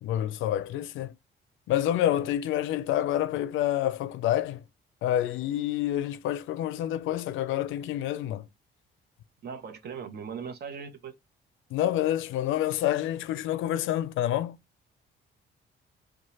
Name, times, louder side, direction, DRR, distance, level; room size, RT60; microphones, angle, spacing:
voice 1, 0.0-1.1 1.7-4.6 5.0-8.4 11.7-14.6, left 12 dB, 85° left, 0.4 m, -28 dB
voice 2, 9.4-11.1, right 6 dB, 55° right, 0.8 m, -39 dB
2.9 x 2.2 x 2.7 m
cardioid pair, 90°, 20 cm